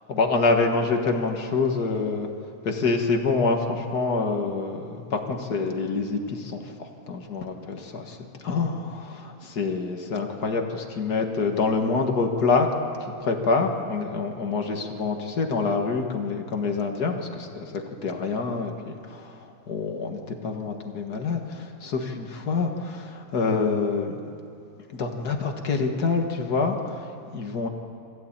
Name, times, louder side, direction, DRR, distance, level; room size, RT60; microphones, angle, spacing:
voice 1, 0.1-2.3 2.6-8.2 8.4-12.7 13.0-24.2 24.9-27.7, left 4 dB, 80° left, 3 dB, 2.2 m, -26 dB
25.5 x 15.5 x 8.9 m, 2.6 s
omnidirectional pair, 1.7 m